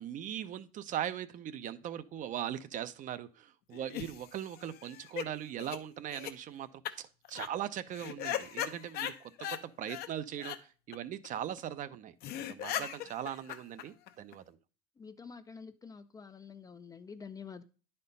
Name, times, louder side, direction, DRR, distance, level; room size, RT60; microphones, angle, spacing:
voice 1, 0.0-14.6, right 10 dB, 40° right, 13 dB, 0.6 m, -40 dB
sound 1, 3.7-5.3 5.6-5.8 6.1-6.3 6.9-7.0 7.3-7.5 7.9-9.6 9.9-10.1 10.4-10.6 10.9-11.0 11.2-11.3 11.6-11.7 11.9-12.0 12.2-14.3, left 11 dB, 50° left, 0.7 m, -38 dB
voice 2, 15.0-17.6, left 5 dB, 15° left, 11 dB, 0.5 m, -48 dB
9.8 x 4.4 x 5.3 m, 0.36 s
supercardioid pair, 110°, 21 cm